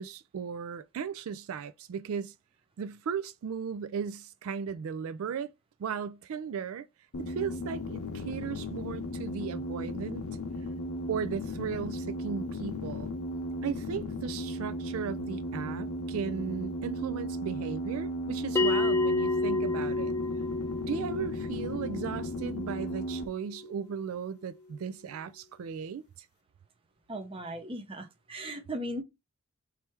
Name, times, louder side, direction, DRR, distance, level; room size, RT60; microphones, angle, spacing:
voice 1, 0.0-2.3 2.8-5.5 5.8-6.9 7.3-10.3 11.1-13.1 13.6-20.1 20.9-26.3, right 7 dB, 75° right, 0.3 m, -36 dB
sound 1, 7.1-23.3, equal, 85° left, 0.7 m, -36 dB
Bell, 18.6-23.6, left 2 dB, 10° left, 0.3 m, -30 dB
voice 2, 27.1-29.0, right 1 dB, 25° right, 0.7 m, -37 dB
3.3 x 3.1 x 4.5 m
head